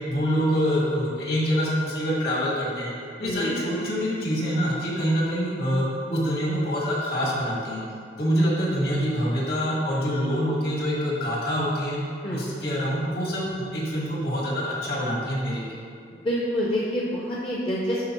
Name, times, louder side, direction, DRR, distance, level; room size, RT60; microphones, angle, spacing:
voice 1, 0.1-2.9 3.2-7.8 8.2-12.0 12.3-15.7, equal, 60° left, -4 dB, 1.6 m, -25 dB
voice 2, 3.2-3.5 12.2-12.4 16.2-18.1, equal, 30° left, -5 dB, 0.6 m, -27 dB
10.5 x 4.0 x 3.0 m, 2.3 s
head